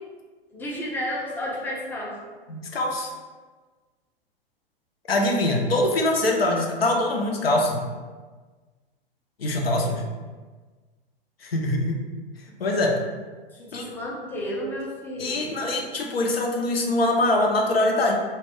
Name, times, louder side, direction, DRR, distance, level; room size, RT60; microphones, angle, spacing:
voice 1, 0.5-2.2 13.5-15.5, equal, 5° left, -4 dB, 0.4 m, -32 dB
voice 2, 2.5-3.1 5.1-7.8 9.4-10.0 11.4-12.0 12.6-13.0 13.7-13.9 15.2-18.1, left 1 dB, 80° left, 0 dB, 0.6 m, -23 dB
2.3 x 2.1 x 3.5 m, 1.4 s
figure-of-eight pair, 100°, 29 cm